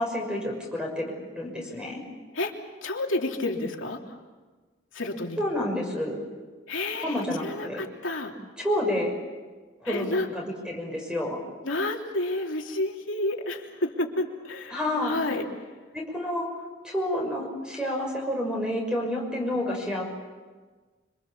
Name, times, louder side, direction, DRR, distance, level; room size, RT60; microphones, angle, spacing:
voice 1, 0.0-2.0 5.4-6.2 7.0-7.8 8.6-9.1 9.8-11.4 14.7-15.2 15.9-16.5 16.8-20.0, left 1 dB, 5° right, 1 dB, 6.3 m, -29 dB
voice 2, 2.8-4.2 4.9-5.4 6.7-8.3 9.8-10.3 11.6-15.5, left 2 dB, 90° left, 1 dB, 3.1 m, -30 dB
26.5 x 26.0 x 7.3 m, 1.3 s
head